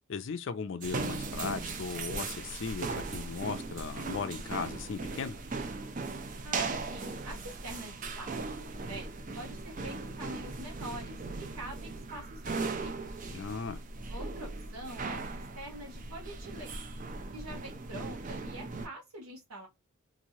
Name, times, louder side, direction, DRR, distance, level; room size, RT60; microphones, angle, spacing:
voice 1, 0.1-5.4 13.3-13.8, left 5 dB, 55° left, 0.4 m, -37 dB
sound 1, 0.8-18.9, right 3 dB, 35° right, 0.4 m, -38 dB
voice 2, 6.4-13.1 14.1-16.9 17.3-19.7, right 1 dB, 85° right, 1.2 m, -45 dB
3.0 x 2.6 x 2.7 m
head